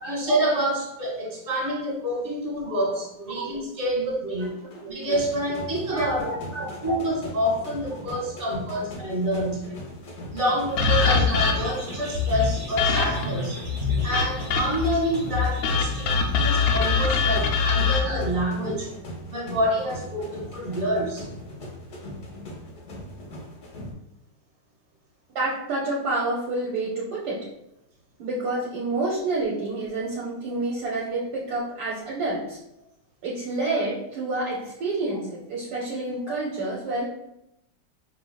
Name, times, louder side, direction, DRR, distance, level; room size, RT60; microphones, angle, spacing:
voice 1, 0.0-4.5 4.9-6.4 6.8-9.8 10.3-13.6 14.0-18.9 19.3-21.3 34.4-34.5 36.2-36.3, equal, 35° right, -3 dB, 1.4 m, -27 dB
sound 1, 4.4-23.9, equal, 55° left, 0.9 m, -39 dB
sound 2, 10.8-11.9 12.8-13.4 14.1-14.9 15.6-18.0, left 5 dB, 85° left, 1.3 m, -23 dB
sound 3, 10.8-18.4, left 5 dB, 50° right, 0.8 m, -29 dB
voice 2, 25.3-27.4 28.2-32.6 33.2-37.0, right 2 dB, 65° right, -4 dB, 1.2 m, -29 dB
4.7 x 3.3 x 2.2 m, 0.83 s
omnidirectional pair, 2.0 m